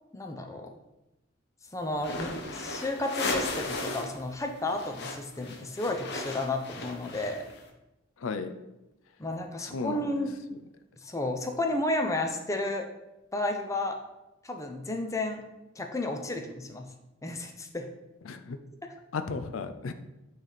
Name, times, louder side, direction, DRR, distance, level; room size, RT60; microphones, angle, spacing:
voice 1, 0.1-0.7 1.7-7.4 9.2-10.3 11.0-12.9 13.3-14.0 14.4-15.4 15.8-16.9 17.2-17.9, left 2 dB, 15° left, 3 dB, 0.6 m, -32 dB
sound 1, 2.0-4.2 4.4-7.6, left 2 dB, 55° left, 0.9 m, -35 dB
voice 2, 8.2-8.5 9.6-10.2 18.3-18.6 19.1-19.9, left 4 dB, 75° left, 9 dB, 0.4 m, -34 dB
8.7 x 3.4 x 4.0 m, 0.95 s
head